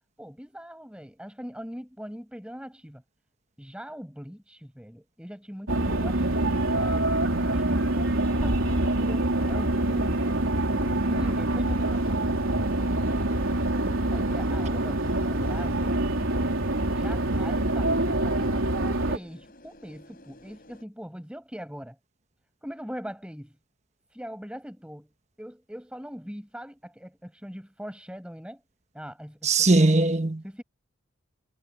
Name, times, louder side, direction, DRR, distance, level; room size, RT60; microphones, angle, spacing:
voice 1, 0.2-3.0 3.6-10.4 10.8-12.3 13.7-16.0 16.9-18.6 18.9-22.0 22.6-23.6 24.1-25.1 25.4-28.6 28.9-30.0 30.4-30.6, equal, 5° right, 6.2 m, -41 dB
sound 1, 5.7-19.2, right 1 dB, 75° right, 3.7 m, -25 dB
sound 2, 6.2-20.8, left 1 dB, 40° left, 6.4 m, -52 dB
voice 2, 29.4-30.6, right 2 dB, 30° right, 1.3 m, -21 dB
head